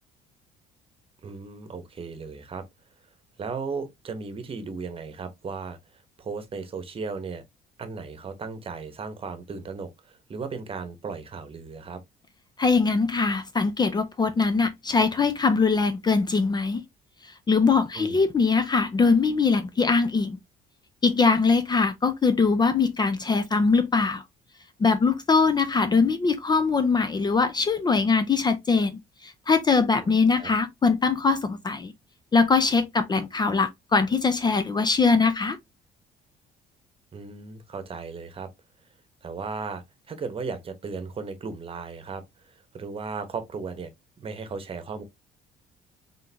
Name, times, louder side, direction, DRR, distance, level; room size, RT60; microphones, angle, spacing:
voice 1, 1.2-2.6 3.4-7.4 7.8-12.0 17.9-18.2 30.2-30.5 37.1-38.5 39.2-43.9 44.2-45.0, right 4 dB, 35° right, 1.0 m, -36 dB
voice 2, 12.6-16.8 17.5-20.4 21.0-24.2 24.8-31.9 32.3-35.6, left 4 dB, 25° left, 0.5 m, -22 dB
3.8 x 3.8 x 2.8 m
cardioid pair, 110°, 17 cm